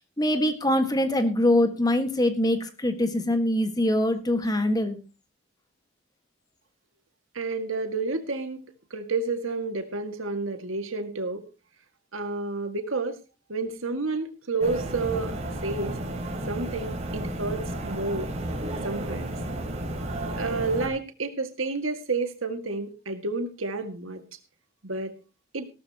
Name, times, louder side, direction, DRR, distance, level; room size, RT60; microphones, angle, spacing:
voice 1, 0.2-5.0, left 1 dB, 20° left, 8 dB, 1.6 m, -23 dB
voice 2, 7.4-8.7 8.9-11.4 12.1-13.2 13.5-15.3 15.6-16.0 16.5-18.3 18.8-19.3 20.4-24.2 24.8-25.1 25.5-25.7, right 3 dB, 90° right, 7 dB, 2.0 m, -30 dB
sound 1, 14.6-20.9, right 1 dB, 35° right, 4.7 m, -32 dB
17.0 x 13.0 x 2.9 m, 0.30 s
head